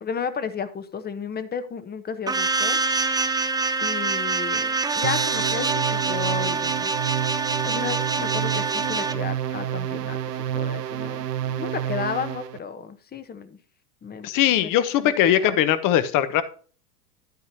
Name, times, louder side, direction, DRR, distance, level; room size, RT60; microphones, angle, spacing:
voice 1, 0.0-2.8 3.8-6.9 7.6-10.2 10.5-13.6 14.0-14.3 14.6-14.7 15.0-15.6, left 6 dB, 20° left, 12 dB, 1.0 m, -33 dB
sound 1, 2.3-9.1, right 4 dB, 10° right, 0.6 m, -25 dB
sound 2, 5.0-12.6, right 10 dB, 90° right, 0.8 m, -29 dB
voice 2, 14.2-16.4, left 11 dB, 45° left, 13 dB, 1.1 m, -20 dB
11.0 x 9.5 x 2.8 m, 0.41 s
hypercardioid pair, 95°, 46 cm